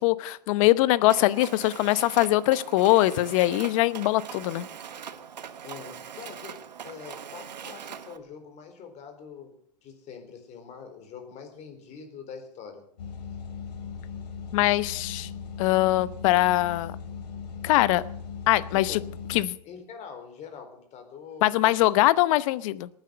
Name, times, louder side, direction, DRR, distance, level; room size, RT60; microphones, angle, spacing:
voice 1, 0.0-4.7 14.5-15.3 15.6-16.9 17.6-18.0 18.5-19.0 19.3-19.5 21.4-22.9, left 17 dB, 50° left, 17 dB, 0.9 m, -22 dB
Mechanisms, 1.1-8.2, right 8 dB, 90° right, 1.4 m, -41 dB
voice 2, 5.6-9.5 9.8-12.8 18.7-19.1 19.6-21.8, left 6 dB, 35° left, 6 dB, 4.1 m, -44 dB
sound 1, 13.0-19.5, left 5 dB, 75° left, 3.9 m, -39 dB
19.0 x 9.4 x 7.7 m, 0.66 s
hypercardioid pair, 125°, 21 cm